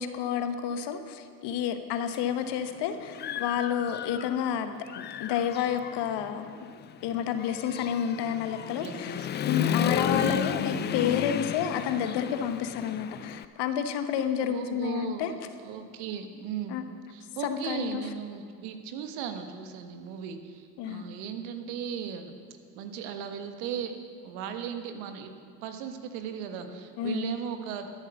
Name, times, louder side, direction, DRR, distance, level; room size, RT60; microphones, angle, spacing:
voice 1, 0.0-6.5 7.0-9.2 9.5-15.3 16.7-16.8 17.4-18.0 20.8-21.0 27.0-27.4, left 8 dB, 60° left, 8 dB, 1.2 m, -30 dB
Human voice / Motorcycle, 2.1-2.2 2.7-4.5 4.9-13.5, left 9 dB, 25° left, 0.3 m, -33 dB
voice 2, 8.8-9.3 9.9-10.9 14.4-16.8 17.1-22.4 22.7-23.9 24.2-25.3 25.6-27.9, right 8 dB, 70° right, 7 dB, 1.4 m, -37 dB
13.0 x 10.5 x 6.7 m, 2.1 s
hypercardioid pair, 60°, 45 cm